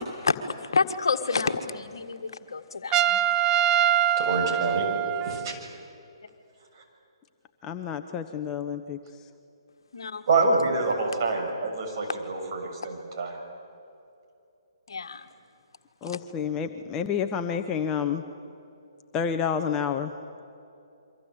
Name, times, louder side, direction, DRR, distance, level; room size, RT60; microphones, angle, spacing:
voice 1, 0.0-3.2 9.9-10.2 14.9-15.3 16.0-16.2, left 4 dB, 65° left, 8 dB, 1.6 m, -29 dB
Trumpet, 2.9-5.6, right 11 dB, 20° right, 0.6 m, -24 dB
voice 2, 4.2-4.9 5.2-5.6 10.3-13.3, right 3 dB, 50° right, 1 dB, 7.1 m, -26 dB
voice 3, 7.6-9.0 16.0-18.2 19.1-20.1, left 7 dB, 20° left, 7 dB, 1.0 m, -29 dB
28.5 x 24.5 x 8.2 m, 2.6 s
figure-of-eight pair, 135°, 3 cm